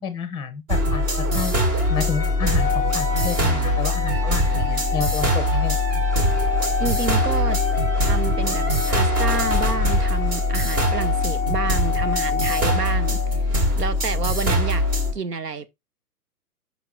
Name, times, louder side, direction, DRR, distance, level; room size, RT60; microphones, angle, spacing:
voice 1, 0.0-1.5 1.9-5.8, left 6 dB, 10° left, 0.9 m, -30 dB
sound 1, 0.7-15.1, left 1 dB, 30° right, 2.0 m, -22 dB
Organ, 2.6-13.4, left 8 dB, 55° left, 0.6 m, -29 dB
voice 2, 6.8-7.6 8.0-13.4 13.8-14.8 15.1-15.7, right 5 dB, 85° right, 1.0 m, -29 dB
sound 2, 9.2-10.8, left 3 dB, 10° right, 1.6 m, -31 dB
5.8 x 4.7 x 3.5 m
figure-of-eight pair, 120°, 47 cm